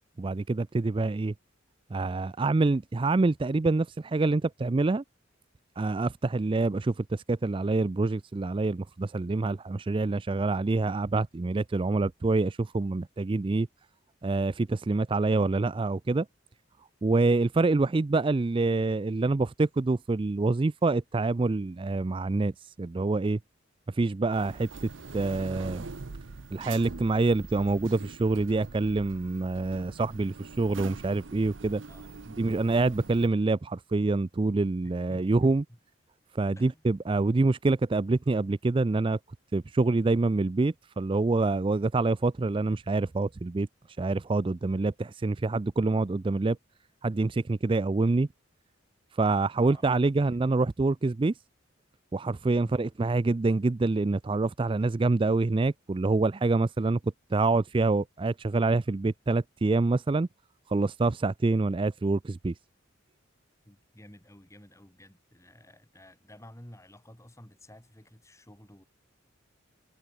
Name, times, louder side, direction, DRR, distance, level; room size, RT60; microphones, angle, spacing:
voice 1, 0.2-1.3 1.9-5.0 5.8-13.7 14.2-16.3 17.0-23.4 23.9-24.7 25.1-25.8 26.5-31.8 32.4-35.6 36.3-39.2 39.5-43.7 44.0-46.6 47.0-48.3 49.2-51.3 52.1-57.0 57.3-60.3 60.7-62.5, right 3 dB, 25° right, 0.4 m, -26 dB
sound 1, 24.3-33.3, right 4 dB, 70° right, 0.8 m, -43 dB
voice 2, 34.8-35.8 36.6-36.8 49.6-50.0 50.3-50.4 52.6-52.9 63.6-68.8, left 1 dB, 15° left, 3.8 m, -52 dB
head